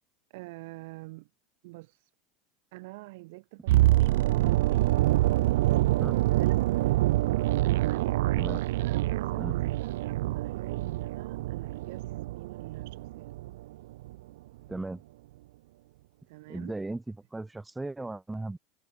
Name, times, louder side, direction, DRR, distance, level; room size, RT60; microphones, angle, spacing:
voice 1, 0.3-1.3 1.6-2.0 2.7-4.6 6.3-7.1 7.8-8.2 8.8-13.3 16.3-16.7, right 23 dB, 60° right, 0.7 m, -45 dB
sound 1, 3.7-13.7 13.9-14.1, right 17 dB, 85° right, 0.3 m, -26 dB
voice 2, 14.7-15.0 16.5-18.6, right 2 dB, 5° right, 0.7 m, -36 dB
supercardioid pair, 180°, 0 cm